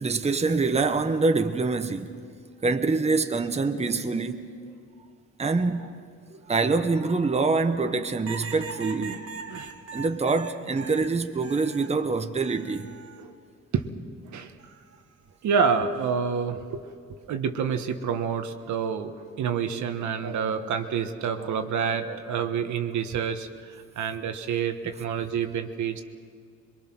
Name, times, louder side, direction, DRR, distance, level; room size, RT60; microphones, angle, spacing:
voice 1, 0.0-2.1 2.6-4.5 5.4-5.9 6.3-9.3 9.9-12.9, right 3 dB, 20° right, 1.1 m, -25 dB
sound 1, 8.3-12.0 12.4-13.2 14.6-15.0, right 4 dB, 50° right, 1.5 m, -41 dB
voice 2, 15.4-16.8 17.3-26.0, right 6 dB, 70° right, 1.3 m, -28 dB
22.5 x 22.5 x 6.1 m
cardioid pair, 90°, 30 cm